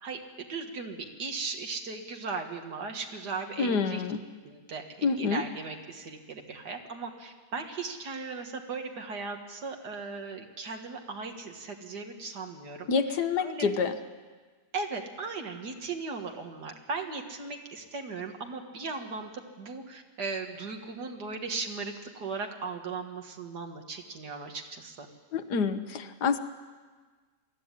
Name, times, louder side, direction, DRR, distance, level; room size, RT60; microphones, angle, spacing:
voice 1, 0.0-4.0 4.4-13.7 14.7-19.3 19.6-25.1, right 4 dB, 85° right, 3 dB, 2.2 m, -37 dB
voice 2, 3.6-4.2 5.0-5.4 12.9-14.0 25.3-26.4, left 5 dB, 90° left, 8 dB, 1.6 m, -27 dB
21.0 x 13.5 x 9.8 m, 1.4 s
omnidirectional pair, 1.7 m